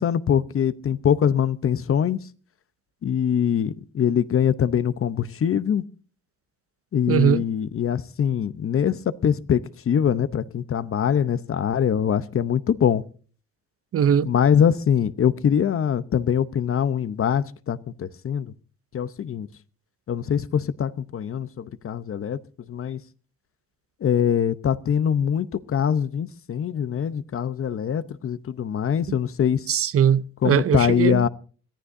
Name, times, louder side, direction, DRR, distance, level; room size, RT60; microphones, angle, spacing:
voice 1, 0.0-2.2 3.0-5.8 6.9-13.0 14.3-18.5 18.9-19.5 20.1-22.4 22.7-23.0 24.0-29.7 30.4-31.3, left 8 dB, 45° left, 0.8 m, -23 dB
voice 2, 7.1-7.4 13.9-14.3 29.1-29.2 29.7-31.3, right 8 dB, 50° right, 0.6 m, -20 dB
25.5 x 14.5 x 2.7 m
cardioid pair, 90°, 30 cm